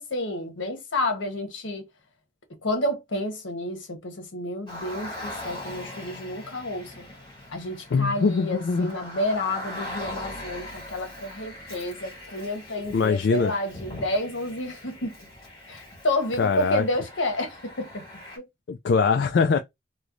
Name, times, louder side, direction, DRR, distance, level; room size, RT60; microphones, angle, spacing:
voice 1, 0.0-1.8 2.6-7.1 7.5-15.1 15.7-18.0, left 1 dB, 80° left, 1.1 m, -30 dB
Car, 4.7-18.4, left 1 dB, 20° left, 1.8 m, -41 dB
voice 2, 7.9-8.9 12.9-13.5 16.4-16.8 18.7-19.6, left 5 dB, 60° left, 0.3 m, -22 dB
3.1 x 2.1 x 3.7 m
head